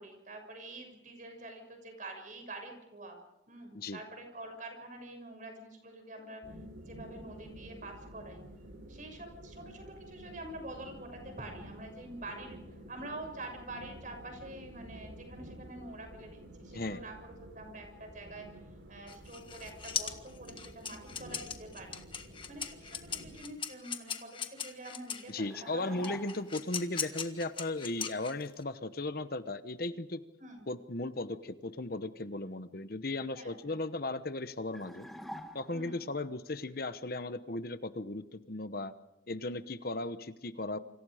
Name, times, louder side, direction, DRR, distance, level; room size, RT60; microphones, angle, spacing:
voice 1, 0.0-3.2 3.5-6.4 6.8-8.4 8.9-12.6 12.9-18.5 18.9-22.0 22.5-26.2 30.4-30.7 33.3-33.8 35.7-36.0, right 2 dB, 40° right, 4 dB, 6.5 m, -46 dB
sound 1, 6.4-23.4, equal, 70° right, 3.7 m, -51 dB
sound 2, 19.1-25.3 26.0-28.6, left 7 dB, 25° left, 1.6 m, -39 dB
voice 2, 25.3-30.2 30.7-35.1 35.5-38.9 39.3-40.8, left 2 dB, 50° left, 11 dB, 1.0 m, -36 dB
sound 3, 25.5-26.7 34.7-36.0, equal, ahead, 1.7 m, -46 dB
28.5 x 26.0 x 5.0 m, 0.87 s
head